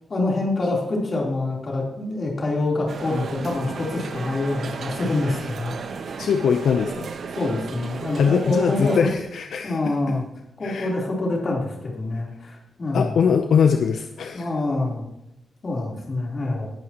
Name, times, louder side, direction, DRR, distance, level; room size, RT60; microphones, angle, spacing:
voice 1, 0.1-5.9 7.4-9.1 9.6-10.2 10.6-13.2 14.3-15.0 15.6-16.7, left 2 dB, 35° left, -3 dB, 3.8 m, -26 dB
sound 1, 2.9-9.0, right 5 dB, 50° right, 0.8 m, -34 dB
Wind instrument woodwind instrument, 3.4-8.1, right 4 dB, 85° right, 2.0 m, -46 dB
voice 2, 6.2-7.1 8.2-9.9 10.6-10.9 12.9-14.5, left 6 dB, 65° left, 5 dB, 0.8 m, -21 dB
18.5 x 11.0 x 3.1 m, 0.85 s
wide cardioid pair, 170°, 0 cm